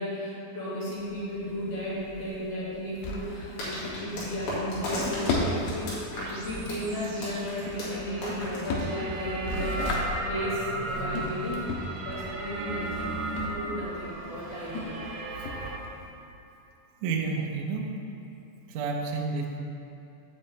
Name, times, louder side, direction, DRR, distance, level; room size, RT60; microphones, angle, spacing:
voice 1, 0.0-10.0 10.2-11.7 12.0-15.1, equal, 55° left, -9 dB, 3.9 m, -34 dB
Drawer open or close, 0.9-16.1, left 2 dB, 90° left, 3.1 m, -37 dB
sound 1, 3.6-9.4, left 1 dB, 70° left, 4.1 m, -36 dB
sound 2, 6.1-15.8, right 2 dB, 65° right, 2.3 m, -36 dB
voice 2, 17.0-17.9 18.7-19.6, right 4 dB, 80° right, 0 dB, 1.8 m, -30 dB
7.4 x 5.6 x 7.6 m, 2.9 s
omnidirectional pair, 4.7 m